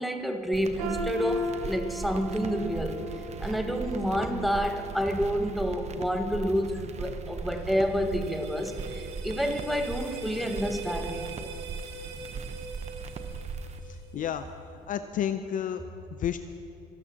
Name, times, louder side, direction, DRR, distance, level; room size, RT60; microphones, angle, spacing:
voice 1, 0.0-3.0 3.4-11.5 14.1-14.2, equal, ahead, 3 dB, 1.7 m, -29 dB
sound 1, 0.5-13.8, right 5 dB, 40° right, 1.0 m, -39 dB
sound 2, 0.8-6.7 7.1-7.4 8.1-8.2, equal, 90° right, 3.4 m, -38 dB
sound 3, 7.3-14.4, right 4 dB, 70° right, 2.1 m, -43 dB
voice 2, 13.9-14.5 14.9-15.8 16.2-16.4, left 9 dB, 50° left, 9 dB, 0.6 m, -31 dB
25.5 x 13.0 x 2.9 m, 2.6 s
supercardioid pair, 80°, 18 cm